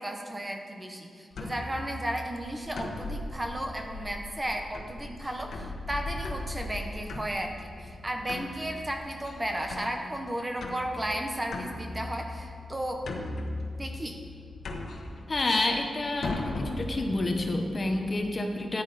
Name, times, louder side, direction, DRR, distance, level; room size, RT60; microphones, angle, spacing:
voice 1, 0.0-13.0 13.8-14.2, right 1 dB, 15° right, 3 dB, 0.9 m, -34 dB
sound 1, 1.3-18.2, left 2 dB, 70° left, 1.2 m, -39 dB
voice 2, 15.3-18.8, left 2 dB, 30° left, 3 dB, 0.9 m, -29 dB
13.5 x 9.7 x 4.1 m, 2.3 s
wide cardioid pair, 155°, 0 cm